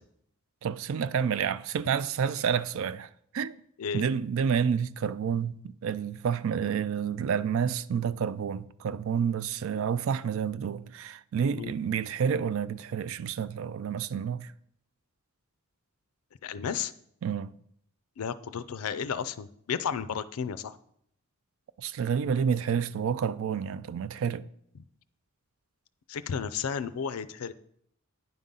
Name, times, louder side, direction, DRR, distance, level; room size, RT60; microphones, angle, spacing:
voice 1, 0.6-3.6 3.9-14.5 17.2-17.5 21.8-24.5, right 7 dB, 65° right, 0.3 m, -29 dB
voice 2, 16.4-16.9 18.2-20.8 26.1-27.5, left 7 dB, 85° left, 0.4 m, -33 dB
9.6 x 3.7 x 5.5 m
head